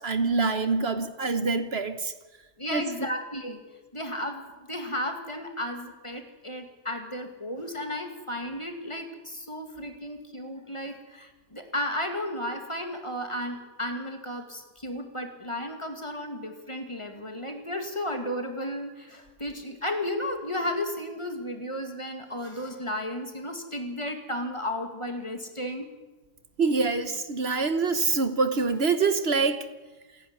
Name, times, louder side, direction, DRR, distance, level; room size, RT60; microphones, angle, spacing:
voice 1, 0.0-2.1 2.7-3.2 26.6-29.7, right 4 dB, 60° right, 10 dB, 1.4 m, -25 dB
voice 2, 2.6-3.6 3.9-25.9, left 1 dB, 25° left, 5 dB, 2.4 m, -34 dB
27.5 x 10.5 x 9.8 m, 1.2 s
omnidirectional pair, 1.2 m